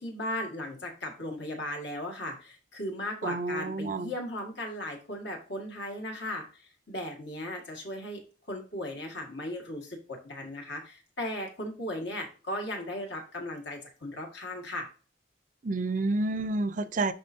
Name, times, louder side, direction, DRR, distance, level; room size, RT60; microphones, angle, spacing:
voice 1, 0.0-8.2 8.5-14.9, left 1 dB, 65° left, 2.0 m, -37 dB
voice 2, 3.2-4.1 15.6-17.1, right 2 dB, 40° right, 0.5 m, -29 dB
10.5 x 4.1 x 2.7 m
head